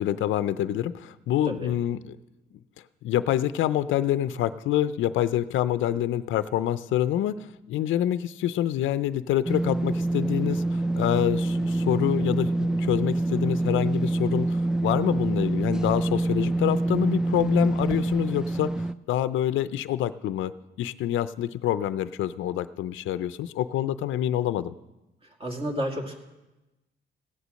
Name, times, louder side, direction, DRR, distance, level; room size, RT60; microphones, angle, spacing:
voice 1, 0.0-2.0 3.0-14.6 14.8-18.7 19.1-20.5 20.8-24.7, left 12 dB, 75° left, 14 dB, 0.5 m, -26 dB
sound 1, 9.5-18.9, right 2 dB, 5° right, 0.3 m, -26 dB
voice 2, 25.2-26.2, equal, 30° right, 2 dB, 2.2 m, -31 dB
16.0 x 8.2 x 6.3 m, 1.0 s
cardioid pair, 90°, 20 cm